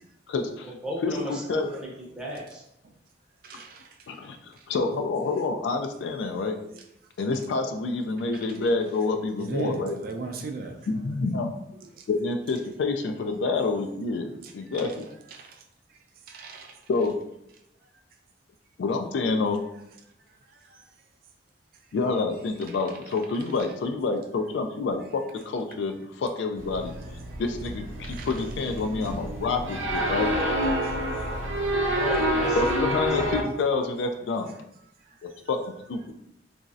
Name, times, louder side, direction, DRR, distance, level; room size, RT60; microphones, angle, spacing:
voice 1, 0.3-0.7 1.0-1.7 4.1-6.6 7.2-10.0 10.9-11.5 12.1-15.0 16.9-17.2 18.8-19.6 21.9-26.9 27.4-30.3 32.5-34.5 35.2-36.1, left 3 dB, 65° left, 6 dB, 0.3 m, -28 dB
voice 2, 0.8-1.9 2.1-2.6 31.9-32.6 32.9-33.0, equal, 5° right, -5 dB, 0.6 m, -35 dB
voice 3, 3.4-3.9 9.4-10.8 15.4-15.5 16.3-16.7 28.1-28.3 28.9-29.5 30.8-31.2, right 3 dB, 50° right, 4 dB, 0.3 m, -37 dB
sound 1, 26.6-33.4, equal, 85° right, 0.6 m, -28 dB
3.0 x 2.6 x 2.4 m, 0.79 s
head